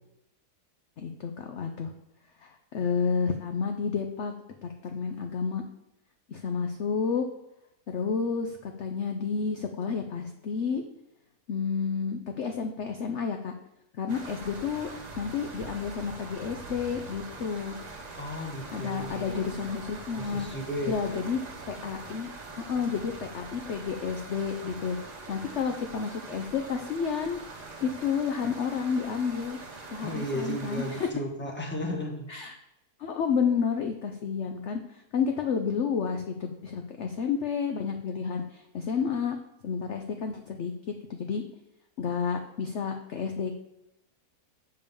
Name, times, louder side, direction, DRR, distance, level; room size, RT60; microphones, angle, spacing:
voice 1, 1.0-1.9 2.4-4.3 4.6-5.6 6.3-7.2 7.9-10.8 11.5-13.5 14.0-14.9 15.2-17.8 18.7-20.5 20.9-21.4 21.7-22.3 22.6-25.0 25.3-27.4 27.8-29.6 29.9-31.1 32.3-32.5 33.0-39.4 39.6-40.7 41.1-41.4 42.0-43.5, left 6 dB, 55° left, 5 dB, 0.8 m, -30 dB
sound 1, 14.1-31.1, right 3 dB, 30° right, 0.9 m, -43 dB
voice 2, 18.2-19.6 20.2-21.2 30.0-32.3, equal, 5° left, 1 dB, 1.3 m, -34 dB
6.9 x 5.3 x 6.8 m, 0.86 s
omnidirectional pair, 1.7 m